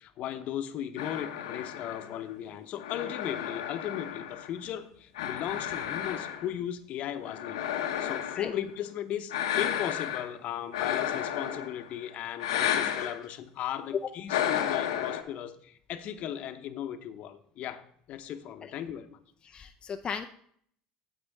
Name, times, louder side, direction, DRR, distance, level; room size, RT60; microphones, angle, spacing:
voice 1, 0.0-17.8 18.1-19.2, left 10 dB, 55° left, 9 dB, 0.9 m, -37 dB
sound 1, 1.0-4.7 5.2-6.6 7.2-8.6 9.3-10.3 10.7-11.9 12.4-13.2 14.3-15.2, left 10 dB, 90° left, 0.9 m, -32 dB
voice 2, 19.4-20.3, left 6 dB, 30° left, 5 dB, 0.5 m, -37 dB
9.6 x 8.0 x 3.5 m, 0.62 s
supercardioid pair, 95°, 3 cm